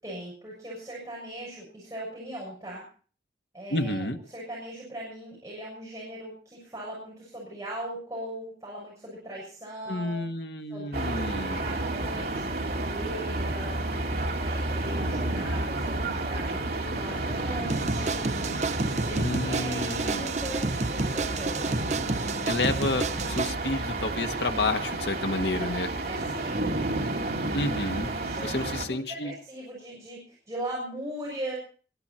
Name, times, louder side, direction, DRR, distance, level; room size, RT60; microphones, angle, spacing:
voice 1, 0.0-2.8 3.5-4.1 4.3-10.2 10.7-11.2 11.4-18.3 18.7-21.7 25.6-26.7 28.1-31.5, right 1 dB, 20° right, -5 dB, 6.6 m, -39 dB
voice 2, 3.7-4.2 9.9-11.6 19.2-20.4 22.4-25.9 27.5-28.1 28.4-29.3, left 2 dB, 75° left, 5 dB, 1.7 m, -30 dB
sound 1, 10.9-28.8, right 2 dB, 55° right, 2.6 m, -31 dB
sound 2, 17.7-23.5, right 3 dB, 40° right, 0.7 m, -30 dB
21.5 x 12.0 x 4.4 m, 0.42 s
head